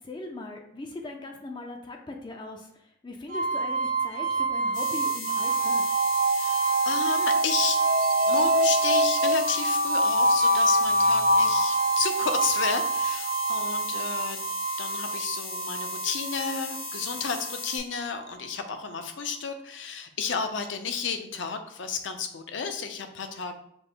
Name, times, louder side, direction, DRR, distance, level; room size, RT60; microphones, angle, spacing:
voice 1, 0.0-6.0, left 2 dB, 25° left, 2 dB, 0.4 m, -40 dB
sound 1, 3.3-18.2, right 2 dB, 40° right, 0.4 m, -25 dB
sound 2, 4.7-17.8, left 4 dB, 85° left, 1.7 m, -38 dB
voice 2, 6.3-7.8 8.3-14.4 14.8-23.5, left 5 dB, 70° left, 7 dB, 0.6 m, -32 dB
5.3 x 2.1 x 4.4 m, 0.73 s
head